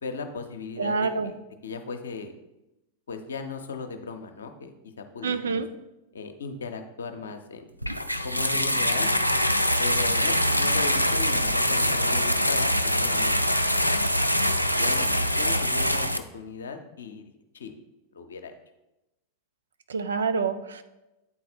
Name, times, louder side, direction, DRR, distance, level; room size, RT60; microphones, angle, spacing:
voice 1, 0.0-1.3 1.6-2.3 3.1-5.6 6.1-7.6 8.2-9.1 9.8-13.6 14.8-17.7 18.1-18.6, left 4 dB, 65° left, 6 dB, 0.7 m, -37 dB
voice 2, 0.8-1.3 5.2-5.7 19.9-20.8, right 4 dB, 65° right, 9 dB, 0.5 m, -27 dB
sound 1, 7.8-16.2, equal, 90° left, 0.3 m, -24 dB
8.7 x 4.2 x 4.2 m, 0.96 s
figure-of-eight pair, 90°, 0 cm